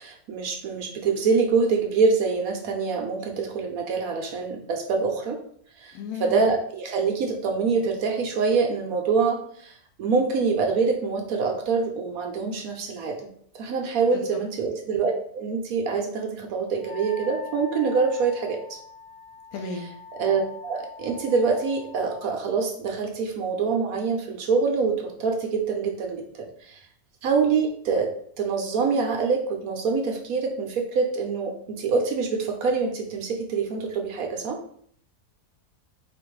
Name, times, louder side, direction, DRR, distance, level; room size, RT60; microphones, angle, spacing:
voice 1, 0.0-5.4 5.8-13.3 13.5-18.8 20.2-26.8 27.2-28.1 28.4-34.6, right 4 dB, 70° right, 3 dB, 1.1 m, -25 dB
voice 2, 5.9-6.4 14.1-14.2 19.5-19.9, left 4 dB, 75° left, 3 dB, 1.1 m, -34 dB
Wind instrument woodwind instrument, 16.8-22.4, left 6 dB, 25° left, 1.2 m, -43 dB
4.3 x 2.5 x 4.5 m, 0.62 s
omnidirectional pair, 1.7 m